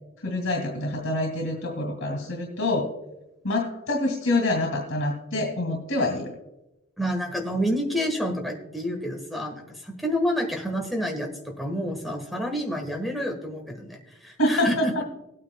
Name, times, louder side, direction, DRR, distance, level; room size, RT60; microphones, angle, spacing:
voice 1, 0.2-2.9 3.4-6.3 14.4-15.0, left 1 dB, 80° left, 2 dB, 2.1 m, -26 dB
voice 2, 7.0-14.9, equal, ahead, 0 dB, 1.4 m, -29 dB
18.5 x 8.9 x 2.3 m, 0.95 s
head